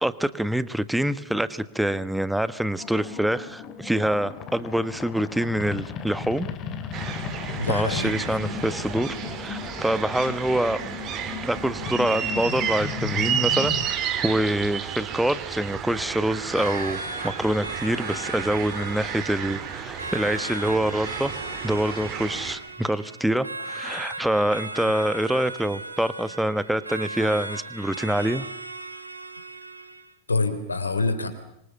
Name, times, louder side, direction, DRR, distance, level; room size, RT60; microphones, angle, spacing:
voice 1, 0.0-6.5 7.7-9.1 9.4-10.8 11.4-13.8 14.2-21.3 21.6-28.5, right 1 dB, 5° right, 15 dB, 1.4 m, -25 dB
sound 1, 2.8-13.9, left 8 dB, 30° left, 2.9 m, -35 dB
sound 2, 6.9-22.6, right 8 dB, 35° right, 3.8 m, -32 dB
voice 2, 7.6-8.3 30.3-31.3, left 3 dB, 80° left, 9 dB, 3.7 m, -26 dB
sound 3, 16.5-30.1, right 2 dB, 80° right, 2.2 m, -37 dB
26.0 x 25.0 x 7.2 m, 0.78 s
figure-of-eight pair, 90°, 0 cm